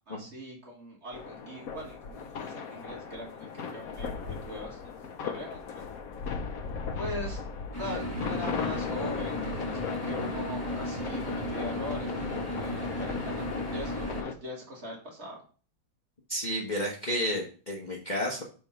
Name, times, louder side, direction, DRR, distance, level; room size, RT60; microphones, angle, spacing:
voice 1, 0.1-5.9 7.0-7.4 7.8-12.2 12.5-13.4 13.7-15.4, equal, 40° right, -2 dB, 2.1 m, -41 dB
sound 1, 1.1-14.3, left 6 dB, 65° left, 1.1 m, -37 dB
sound 2, 7.7-14.2, equal, 15° left, 2.2 m, -35 dB
voice 2, 16.3-18.4, equal, 30° left, -3 dB, 1.1 m, -31 dB
5.4 x 4.4 x 5.6 m, 0.40 s
omnidirectional pair, 1.8 m